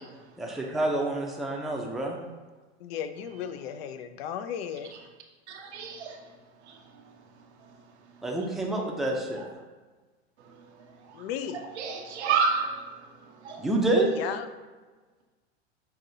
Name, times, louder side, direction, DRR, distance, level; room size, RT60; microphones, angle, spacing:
voice 1, 0.4-2.2 8.2-9.4 13.6-14.1, right 2 dB, ahead, -2 dB, 0.5 m, -27 dB
voice 2, 2.8-4.9 11.1-11.6 14.1-14.5, left 8 dB, 65° left, 10 dB, 0.5 m, -35 dB
voice 3, 5.5-6.2 11.5-12.7 13.4-13.7, right 5 dB, 85° right, 2 dB, 0.7 m, -28 dB
5.7 x 2.7 x 2.6 m, 1.3 s
hypercardioid pair, 115°, 33 cm